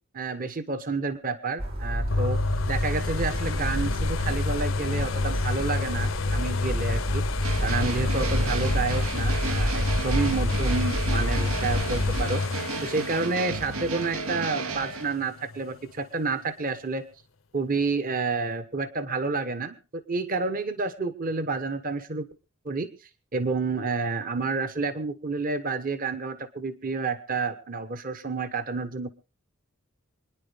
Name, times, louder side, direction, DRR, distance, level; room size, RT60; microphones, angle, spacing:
voice 1, 0.1-2.4 2.7-7.2 7.6-17.0 17.5-22.3 22.6-22.9 23.3-29.1, right 3 dB, 40° right, 11 dB, 1.1 m, -29 dB
sound 1, 1.6-12.2, equal, 70° right, 4.3 m, -29 dB
sound 2, 2.1-15.8 16.3-16.4, left 3 dB, 60° left, 0.7 m, -30 dB
sound 3, 7.4-15.2, right 4 dB, 85° right, 1.3 m, -33 dB
26.5 x 10.5 x 3.4 m, 0.33 s
head